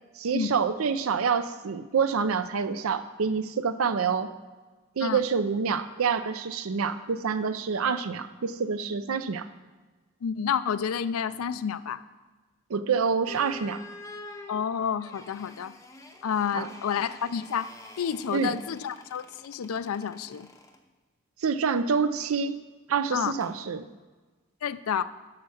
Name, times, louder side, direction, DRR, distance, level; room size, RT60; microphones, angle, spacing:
voice 1, 0.2-4.3 5.0-9.5 12.7-13.8 16.5-16.7 18.3-18.6 21.4-22.6 22.9-23.9, right 5 dB, 75° right, 12 dB, 0.5 m, -27 dB
voice 2, 10.2-12.0 14.5-15.7 16.2-17.7 18.0-20.5 23.1-23.3 24.6-25.0, left 7 dB, 80° left, 14 dB, 0.4 m, -29 dB
sound 1, 13.2-20.8 23.4-23.6, left 2 dB, 15° left, 0.6 m, -47 dB
8.6 x 5.8 x 6.3 m, 1.3 s
head